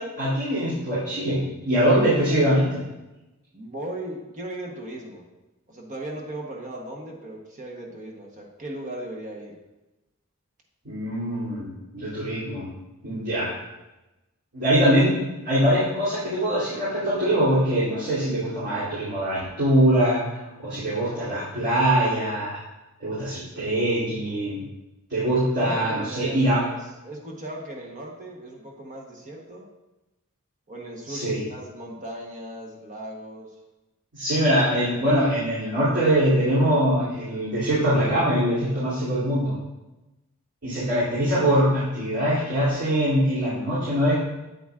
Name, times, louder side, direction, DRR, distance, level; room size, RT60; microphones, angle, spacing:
voice 1, 0.0-2.8 10.8-11.7 11.9-12.7 13.0-13.5 14.5-15.2 15.4-20.2 20.6-22.6 23.0-24.6 25.1-26.6 31.1-31.4 34.1-39.6 40.6-44.1, right 1 dB, 60° right, -12 dB, 2.8 m, -23 dB
voice 2, 3.5-5.2 5.7-9.6 25.4-26.8 27.0-29.7 30.7-33.5, right 1 dB, 35° right, 0 dB, 1.0 m, -37 dB
8.5 x 7.9 x 2.4 m, 1.0 s
head